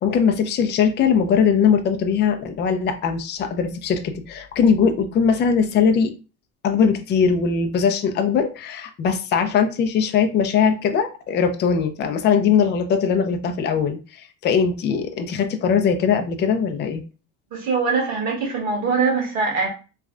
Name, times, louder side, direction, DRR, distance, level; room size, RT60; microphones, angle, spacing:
voice 1, 0.0-6.1 6.6-17.0, left 6 dB, 30° left, 0.4 m, -20 dB
voice 2, 17.5-19.7, right 4 dB, 45° right, 1.5 m, -22 dB
3.2 x 2.3 x 3.7 m
cardioid pair, 145°, 39 cm